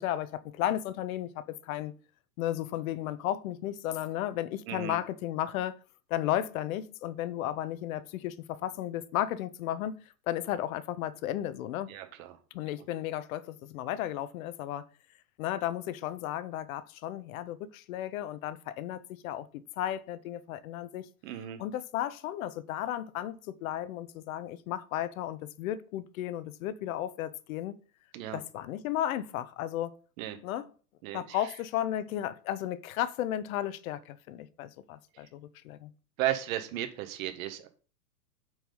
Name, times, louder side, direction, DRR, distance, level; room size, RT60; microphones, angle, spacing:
voice 1, 0.0-1.9 2.4-5.8 6.1-11.9 12.5-14.8 15.4-19.5 19.8-21.1 21.6-27.7 28.3-30.0 30.4-30.7 31.1-35.9, left 12 dB, 55° left, 0.8 m, -34 dB
voice 2, 11.9-12.4 21.2-21.6 28.1-28.4 30.2-30.4 31.0-31.5 36.2-37.7, right 13 dB, 55° right, 1.7 m, -34 dB
7.9 x 4.8 x 5.5 m
hypercardioid pair, 115°, 49 cm